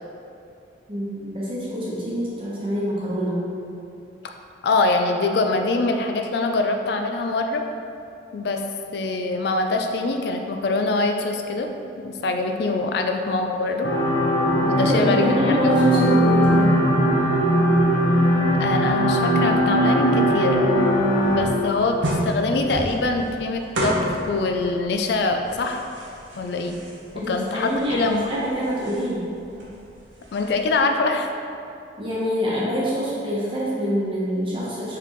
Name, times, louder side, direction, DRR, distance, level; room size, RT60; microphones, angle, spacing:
voice 1, 0.9-3.4 14.7-16.8 27.1-29.3 32.0-35.0, equal, 30° right, -7 dB, 0.9 m, -25 dB
voice 2, 4.6-7.6 8.3-8.6 8.9-11.7 12.0-13.9 14.6-15.3 15.6-16.1 18.6-20.6 21.2-25.8 26.4-26.8 27.3-28.3 30.3-31.3, left 3 dB, 60° left, 4 dB, 0.3 m, -24 dB
sound 1, 13.8-21.4, equal, 90° left, 0.7 m, -19 dB
sound 2, 20.4-30.8, right 1 dB, 75° right, 0.7 m, -33 dB
4.6 x 3.5 x 3.0 m, 2.5 s
head